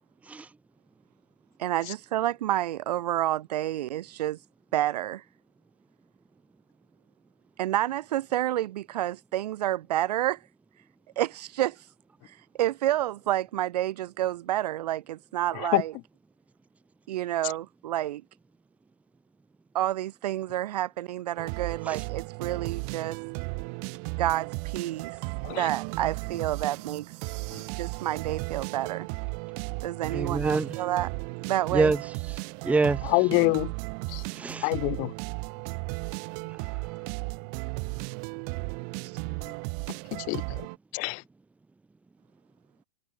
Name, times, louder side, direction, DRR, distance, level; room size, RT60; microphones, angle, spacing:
voice 1, 1.6-4.4 4.7-5.2 7.6-10.4 11.2-11.8 12.3-15.9 17.1-18.2 19.7-23.2 24.2-25.2 25.5-27.1 27.8-29.1 29.8-31.1 31.4-31.9 39.0-39.1, right 13 dB, 70° right, 3.8 m, -29 dB
sound 1, 21.4-40.8, right 40 dB or more, 45° right, 4.7 m, -35 dB
voice 2, 30.1-30.8 31.7-32.0 32.3-33.1 34.4-34.7 36.5-36.8, right 3 dB, 5° right, 0.9 m, -27 dB
voice 3, 33.1-33.7 34.1-34.2 34.6-35.1 40.1-40.4 40.9-41.2, left 32 dB, 40° left, 0.6 m, -25 dB
hypercardioid pair, 135°, 21 cm